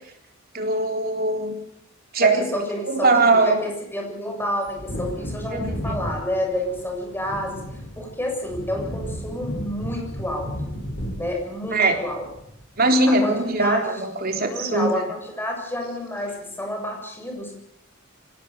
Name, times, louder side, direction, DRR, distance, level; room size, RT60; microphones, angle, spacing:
voice 1, 0.5-1.6 2.1-3.6 5.5-6.0 11.7-12.0 12.8-15.0, right 2 dB, 50° right, 4 dB, 3.8 m, -21 dB
voice 2, 2.2-7.6 8.0-10.5 11.2-12.3 13.1-14.0 14.4-17.5, left 1 dB, 10° left, 1 dB, 7.0 m, -29 dB
Wind / Thunder, 4.6-12.9 13.2-13.3, equal, 55° left, 5.7 m, -34 dB
25.0 x 18.0 x 7.0 m, 0.79 s
head